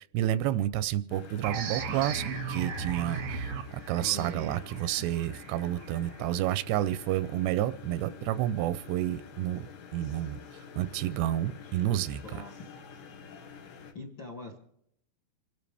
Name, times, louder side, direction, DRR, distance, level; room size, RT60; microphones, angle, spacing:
voice 1, 0.1-9.7 9.9-10.4 10.8-12.2, right 13 dB, 85° right, 15 dB, 2.8 m, -30 dB
sound 1, 1.1-13.9, left 6 dB, 80° left, 3.6 m, -48 dB
sound 2, 1.4-6.8, right 5 dB, 65° right, 1.7 m, -37 dB
voice 2, 4.0-4.6 5.0-5.1 12.2-12.5 13.9-14.6, left 2 dB, 45° left, 2 dB, 1.5 m, -42 dB
27.5 x 12.5 x 3.4 m, 0.72 s
omnidirectional pair, 4.8 m